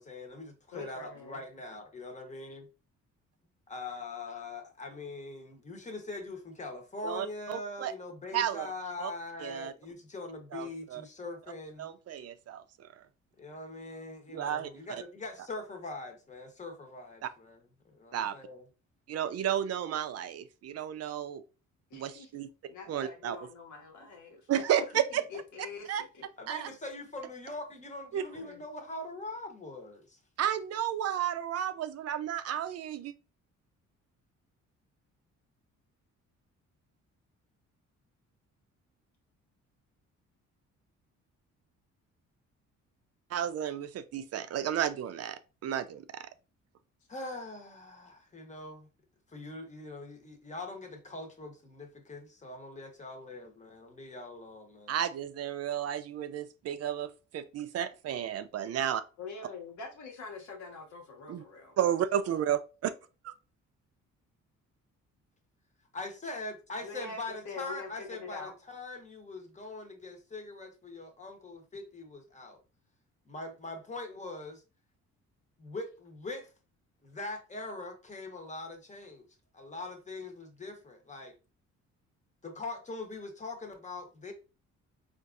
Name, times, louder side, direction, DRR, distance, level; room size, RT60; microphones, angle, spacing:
voice 1, 0.0-2.7 3.7-11.9 13.4-17.6 17.8-18.6 24.7-24.8 26.4-30.2 47.1-48.9 49.3-54.9 65.9-72.6 73.3-74.6 75.6-76.5 77.0-79.2 79.5-81.3 82.4-84.3, left 2 dB, 25° left, 0.9 m, -42 dB
voice 2, 0.7-1.4 21.9-22.4 22.7-24.4 25.1-26.3 26.6-26.7 28.4-28.6 59.2-61.8 66.8-68.5, left 4 dB, 75° left, 1.1 m, -45 dB
voice 3, 7.0-7.9 8.3-8.7 9.0-9.1 9.4-9.7 10.5-11.0 11.8-13.0 14.3-14.7 17.2-17.3 18.1-18.3 19.1-21.4 21.9-22.5 22.9-23.4 24.5-25.2 25.9-26.0 26.5-26.7 28.1-28.2 30.4-33.1 43.3-46.3 54.9-59.0 61.3-61.4 61.8-62.9 63.2-63.3, right 10 dB, 55° right, 0.4 m, -32 dB
4.0 x 2.5 x 2.4 m
cardioid pair, 90°, 30 cm